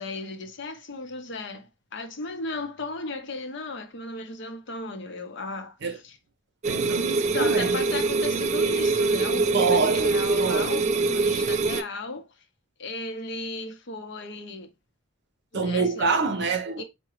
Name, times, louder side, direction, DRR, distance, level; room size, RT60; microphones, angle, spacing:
voice 1, 0.0-6.2 7.3-12.3 12.8-14.7 15.5-16.1 16.8-16.9, left 3 dB, 60° left, 0.7 m, -35 dB
sound 1, 6.6-11.8, right 3 dB, 35° right, 0.3 m, -24 dB
voice 2, 6.6-7.8 9.5-10.8 15.5-16.8, right 4 dB, 60° right, 0.7 m, -26 dB
4.7 x 2.2 x 3.1 m
head